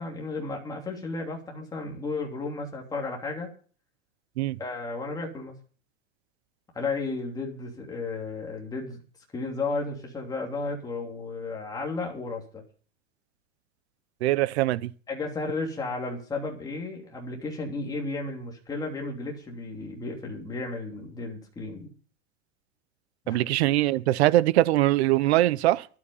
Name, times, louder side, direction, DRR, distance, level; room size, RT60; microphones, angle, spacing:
voice 1, 0.0-3.5 4.6-5.5 6.7-9.0 9.3-12.6 15.1-21.9 23.2-23.4, left 3 dB, 10° left, 3.0 m, -33 dB
voice 2, 14.2-14.9 23.3-25.9, right 15 dB, 60° right, 0.8 m, -22 dB
13.0 x 12.0 x 5.5 m
supercardioid pair, 165°, 38 cm